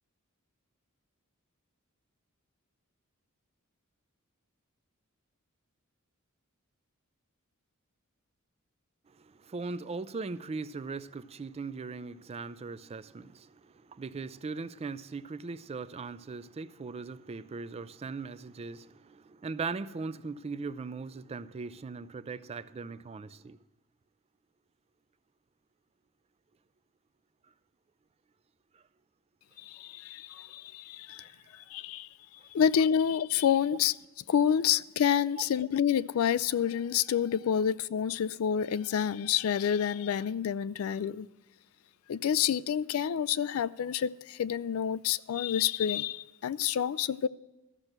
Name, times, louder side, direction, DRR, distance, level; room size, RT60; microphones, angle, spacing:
voice 1, 9.2-23.6 28.7-28.8, right 4 dB, 30° right, 0.3 m, -39 dB
voice 2, 29.6-32.1 32.5-33.9 34.3-41.3 42.1-47.3, left 8 dB, 70° left, 0.3 m, -28 dB
13.5 x 6.6 x 5.9 m
head